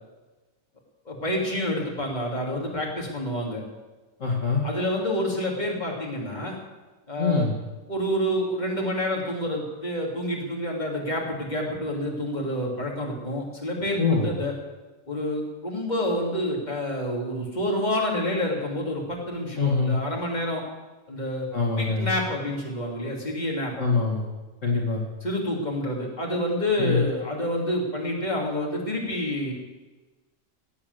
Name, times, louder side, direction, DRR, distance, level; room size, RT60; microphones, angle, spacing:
voice 1, 1.1-3.6 4.6-6.6 7.1-7.4 7.9-14.5 15.1-20.6 21.1-21.5 21.8-23.7 25.2-29.5, left 1 dB, 30° left, -1 dB, 3.2 m, -28 dB
voice 2, 4.2-4.6 7.2-7.5 14.0-14.3 19.6-20.0 21.5-22.1 23.8-24.2 24.6-25.1 26.8-27.0, left 4 dB, 65° left, -1 dB, 2.6 m, -23 dB
17.0 x 8.6 x 8.1 m, 1.2 s
omnidirectional pair, 1.4 m